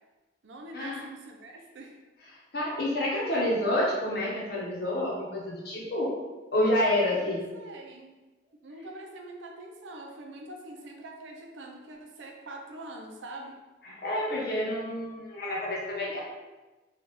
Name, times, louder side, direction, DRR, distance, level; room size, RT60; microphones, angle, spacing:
voice 1, 0.4-1.9 6.9-8.2 8.6-13.6, right 1 dB, 80° right, 2 dB, 0.5 m, -44 dB
voice 2, 2.5-6.1 6.5-7.4 13.8-16.2, left 1 dB, 55° left, -4 dB, 0.8 m, -28 dB
3.3 x 2.4 x 3.0 m, 1.2 s
head